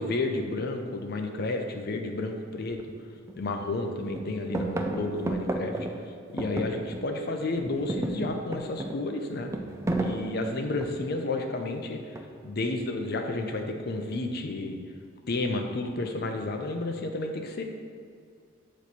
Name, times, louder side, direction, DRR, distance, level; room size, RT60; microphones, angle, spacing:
voice 1, 0.0-2.8 3.4-5.9 6.3-9.5 10.0-12.1 12.4-14.8 15.3-17.6, left 2 dB, 50° left, 4 dB, 0.6 m, -31 dB
sound 1, 2.7-2.8 3.3-3.8 4.1-7.3 7.6-11.2 12.1-12.6, right 1 dB, 15° right, 0.3 m, -33 dB
8.2 x 3.1 x 4.2 m, 2.3 s
head